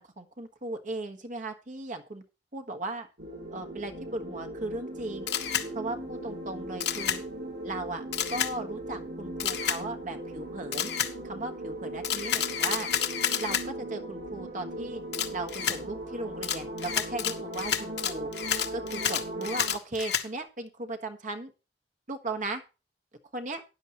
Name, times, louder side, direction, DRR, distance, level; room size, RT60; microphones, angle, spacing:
voice 1, 0.0-2.2 2.5-3.1 3.5-5.3 5.7-7.2 7.6-8.0 8.3-10.9 11.2-12.9 13.4-15.0 15.3-18.3 18.7-21.5 22.1-22.6 23.3-23.6, right 2 dB, 45° right, 7 dB, 1.5 m, -37 dB
sound 1, 3.2-19.7, right 1 dB, 70° right, 7.4 m, -39 dB
Camera, 5.3-5.7 6.8-7.2 8.1-8.5 9.4-9.8 10.7-11.1 12.0-13.6 15.1-15.8 16.4-20.3, left 9 dB, 70° left, 1.2 m, -29 dB
13.0 x 10.5 x 3.0 m, 0.30 s
head